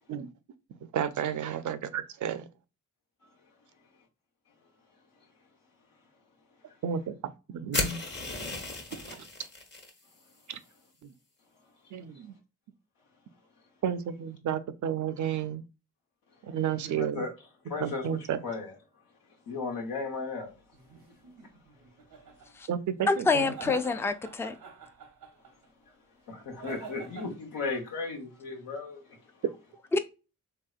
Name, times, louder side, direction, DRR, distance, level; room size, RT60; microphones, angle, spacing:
voice 1, 0.9-2.5 6.8-8.0 8.9-9.2 10.5-10.6 11.0-11.1 11.9-12.3 13.8-15.6 16.4-17.3 17.8-18.4 22.7-23.5, right 8 dB, 60° right, 0.5 m, -32 dB
sound 1, 7.7-9.9, left 2 dB, 30° left, 0.9 m, -34 dB
voice 2, 17.0-17.3 17.7-18.2 18.4-18.7 19.5-20.5 26.3-29.0, left 4 dB, 85° left, 1.0 m, -35 dB
sound 2, 20.7-22.5 23.3-25.7 26.6-27.3, right 5 dB, 85° right, 0.8 m, -47 dB
voice 3, 23.1-24.6 29.9-30.0, left 4 dB, 10° left, 0.3 m, -26 dB
3.2 x 2.8 x 2.3 m
cardioid pair, 50°, 33 cm